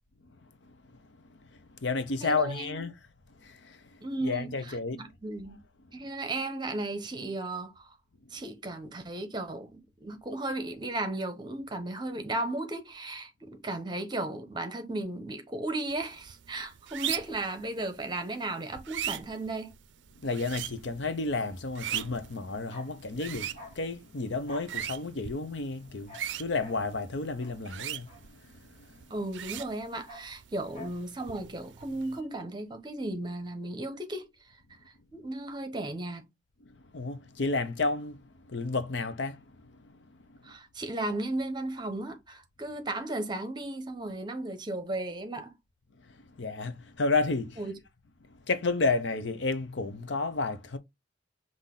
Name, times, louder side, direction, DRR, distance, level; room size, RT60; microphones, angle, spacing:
voice 1, 0.6-3.0 3.4-5.1 20.2-29.0 36.6-40.5 46.1-47.6 48.3-50.8, left 3 dB, 70° left, 0.7 m, -32 dB
voice 2, 2.2-2.8 4.0-5.6 5.9-7.9 8.3-19.7 29.1-34.3 35.1-36.3 40.4-45.5 47.6-47.8, right 2 dB, 25° right, 0.9 m, -35 dB
sound 1, 15.9-32.2, right 11 dB, 75° right, 0.4 m, -41 dB
Bark, 21.8-28.9 29.1-31.1 31.3-31.5, left 1 dB, 35° left, 2.7 m, -51 dB
5.6 x 2.6 x 3.7 m
head